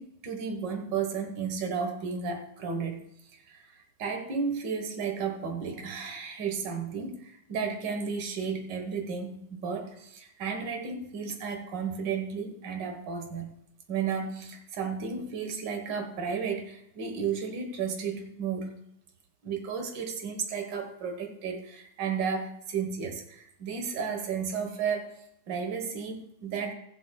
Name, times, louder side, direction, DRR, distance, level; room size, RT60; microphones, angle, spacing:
voice 1, 0.0-3.0 3.3-3.6 4.0-13.5 13.9-18.8 19.4-25.1 25.5-26.7, right 6 dB, 75° right, 4 dB, 1.9 m, -33 dB
20.0 x 7.9 x 2.3 m, 0.78 s
omnidirectional pair, 1.9 m